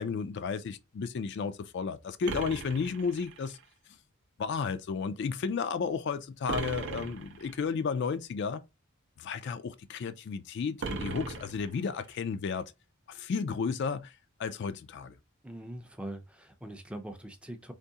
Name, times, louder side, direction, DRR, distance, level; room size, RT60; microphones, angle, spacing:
voice 1, 0.0-3.6 4.4-8.6 9.2-12.7 13.1-14.1 14.4-15.2, left 5 dB, 55° left, 0.3 m, -33 dB
sound 1, 2.3-3.6 6.5-7.6 10.8-12.1, right 4 dB, 55° right, 0.5 m, -38 dB
voice 2, 15.4-17.7, right 1 dB, 5° right, 0.5 m, -42 dB
3.6 x 3.0 x 2.7 m
head